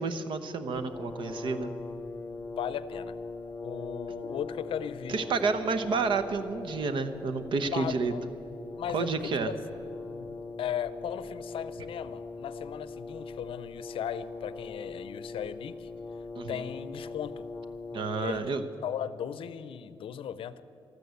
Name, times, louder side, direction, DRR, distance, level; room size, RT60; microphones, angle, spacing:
voice 1, 0.0-1.7 5.1-8.1 8.9-9.5 16.3-16.6 17.9-18.6, right 4 dB, 60° right, 9 dB, 1.0 m, -30 dB
Brass instrument, 0.7-18.5, left 3 dB, 15° left, 0.7 m, -41 dB
voice 2, 2.6-3.1 3.6-5.3 5.6-5.7 7.7-8.2 8.8-9.1 9.4-9.5 10.1-10.3 10.6-15.9 16.5-17.4 18.1-18.4 18.8-20.6, left 9 dB, 70° left, 15 dB, 0.6 m, -36 dB
13.0 x 13.0 x 8.2 m, 2.9 s
wide cardioid pair, 145°, 9 cm